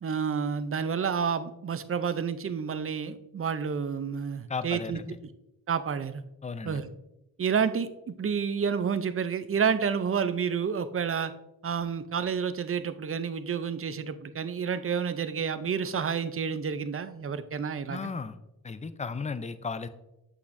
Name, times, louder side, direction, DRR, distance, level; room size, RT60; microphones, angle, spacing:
voice 1, 0.0-5.0 5.7-6.2 6.6-6.8 7.4-11.3 11.6-18.1, right 6 dB, 40° right, 12 dB, 0.5 m, -29 dB
voice 2, 4.5-5.2 6.4-6.8 17.9-18.4 18.6-19.9, left 5 dB, 20° left, 12 dB, 0.4 m, -35 dB
8.3 x 5.8 x 2.6 m, 0.90 s
cardioid pair, 75°, 35 cm